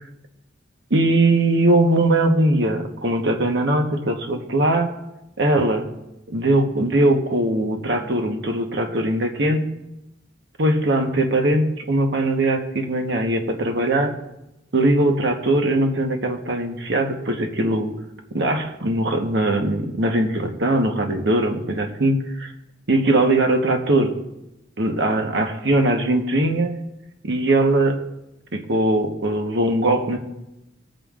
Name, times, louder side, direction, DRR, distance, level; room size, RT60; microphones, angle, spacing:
voice 1, 0.9-4.9 5.4-5.9 6.3-9.7 10.6-14.1 14.7-17.9 18.3-22.5 22.9-24.1 24.8-26.7 27.2-28.0 28.5-30.2, right 1 dB, 65° right, 3 dB, 1.2 m, -20 dB
19.0 x 9.1 x 2.5 m, 0.90 s
head